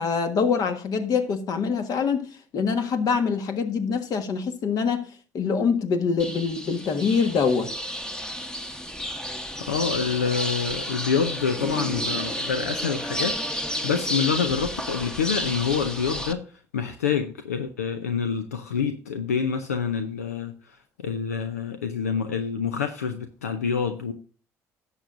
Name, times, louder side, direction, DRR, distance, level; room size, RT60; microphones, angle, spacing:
voice 1, 0.0-2.3 2.5-5.1 5.3-7.7, left 5 dB, 50° left, 1.5 m, -24 dB
sound 1, 6.2-16.3, equal, 10° left, 1.1 m, -31 dB
voice 2, 9.7-13.4 13.8-16.4 16.7-24.1, left 6 dB, 85° left, 0.6 m, -27 dB
17.0 x 7.1 x 2.6 m
figure-of-eight pair, 55°, 8 cm